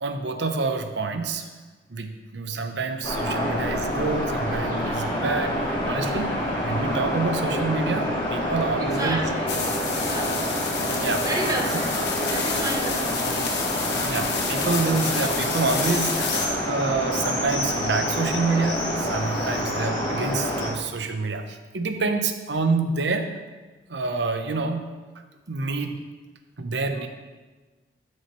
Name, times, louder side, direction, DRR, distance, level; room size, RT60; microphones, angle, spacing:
voice 1, 0.0-1.5 1.9-6.3 6.6-9.2 10.1-10.2 10.9-11.2 13.9-23.4 23.9-25.0 25.5-26.0 26.6-27.1, right 3 dB, 65° right, 6 dB, 0.8 m, -27 dB
sound 1, 3.0-20.7, equal, 25° left, 3.0 m, -27 dB
voice 2, 8.8-10.5 11.2-13.6, right 1 dB, 20° right, 1 dB, 1.0 m, -32 dB
sound 2, 9.5-16.5, left 5 dB, 65° left, 1.2 m, -30 dB
12.5 x 6.3 x 3.1 m, 1.3 s
head